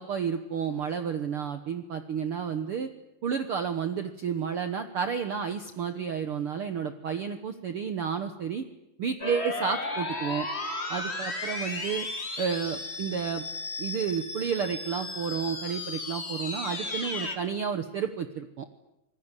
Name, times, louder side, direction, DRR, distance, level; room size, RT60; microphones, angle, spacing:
voice 1, 0.0-2.9 3.2-8.6 9.0-10.5 10.9-12.1 12.4-13.4 13.8-18.7, right 7 dB, 60° right, 8 dB, 1.6 m, -31 dB
sound 1, 9.2-17.4, left 2 dB, 20° left, 2.3 m, -35 dB
26.5 x 20.0 x 9.8 m, 0.92 s
omnidirectional pair, 3.8 m